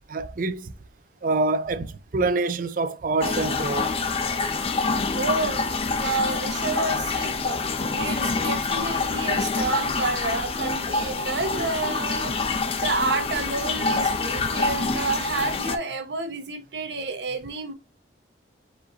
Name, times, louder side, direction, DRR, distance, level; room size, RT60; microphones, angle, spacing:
voice 1, 0.1-0.7 1.2-4.0, right 3 dB, 50° right, 0.4 m, -26 dB
sound 1, 3.2-15.8, left 3 dB, 35° left, 0.5 m, -26 dB
voice 2, 5.1-7.6 7.9-17.7, right 3 dB, 80° right, 1.0 m, -30 dB
4.9 x 2.7 x 3.8 m
head